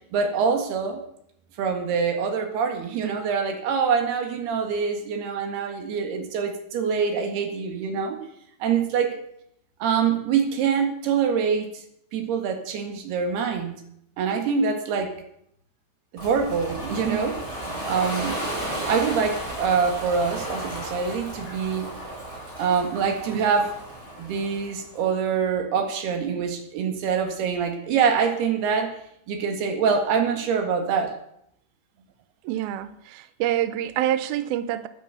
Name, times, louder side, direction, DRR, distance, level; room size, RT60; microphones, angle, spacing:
voice 1, 0.1-1.0 1.6-8.2 8.6-9.2 9.8-11.7 12.1-13.8 14.2-15.1 16.1-17.4 17.9-18.4 18.9-21.9 22.6-23.7 24.2-29.0 29.3-31.1, right 6 dB, 65° right, 5 dB, 3.6 m, -25 dB
Ocean, 16.2-25.0, right 1 dB, 15° right, 7.6 m, -34 dB
voice 2, 32.4-34.9, right 12 dB, 90° right, 12 dB, 2.1 m, -26 dB
12.5 x 9.9 x 8.2 m, 0.73 s
omnidirectional pair, 5.4 m